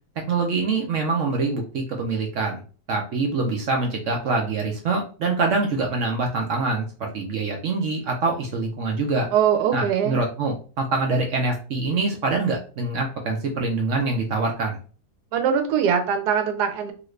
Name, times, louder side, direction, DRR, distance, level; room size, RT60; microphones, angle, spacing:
voice 1, 0.3-2.6 2.9-9.3 9.7-14.8, right 3 dB, 65° right, 1 dB, 0.8 m, -25 dB
voice 2, 9.3-10.2 15.3-16.9, right 8 dB, 85° right, 6 dB, 1.2 m, -22 dB
2.8 x 2.5 x 3.1 m, 0.38 s
omnidirectional pair, 1.7 m